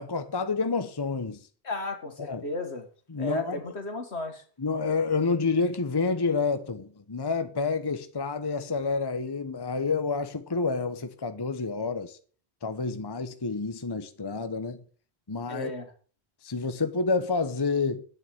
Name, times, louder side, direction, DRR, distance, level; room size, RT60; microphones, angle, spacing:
voice 1, 0.0-1.4 2.3-2.4 3.1-3.6 4.6-12.2 12.6-14.8 15.3-15.7 16.4-18.0, left 4 dB, 25° left, 0.8 m, -29 dB
voice 2, 1.6-2.9 3.2-4.4 15.5-15.8, left 2 dB, 75° left, 2.2 m, -34 dB
9.3 x 7.8 x 8.5 m
omnidirectional pair, 1.1 m